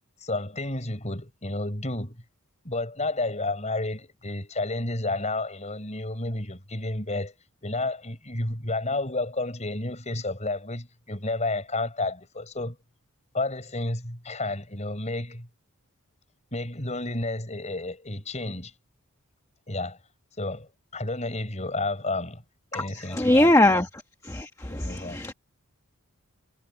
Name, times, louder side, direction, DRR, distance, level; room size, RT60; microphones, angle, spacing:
voice 1, 0.2-2.2 2.6-7.3 7.6-12.8 13.3-15.5 16.5-18.7 19.7-20.0 20.4-22.4 22.7-23.9 24.7-25.2, left 2 dB, 30° left, 6.5 m, -31 dB
voice 2, 22.7-23.9 24.2-25.3, left 1 dB, 15° left, 1.2 m, -22 dB
head